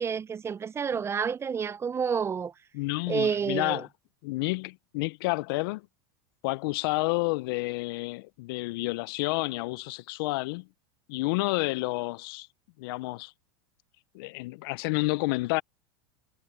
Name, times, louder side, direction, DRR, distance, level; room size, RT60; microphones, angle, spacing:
voice 1, 0.0-2.5 3.1-3.8, right 6 dB, 20° right, 0.6 m, -29 dB
voice 2, 2.7-3.9 4.2-5.8 6.4-10.6 11.1-12.5 12.8-13.3 14.1-15.6, left 23 dB, 70° left, 0.5 m, -30 dB
supercardioid pair, 110°, 13 cm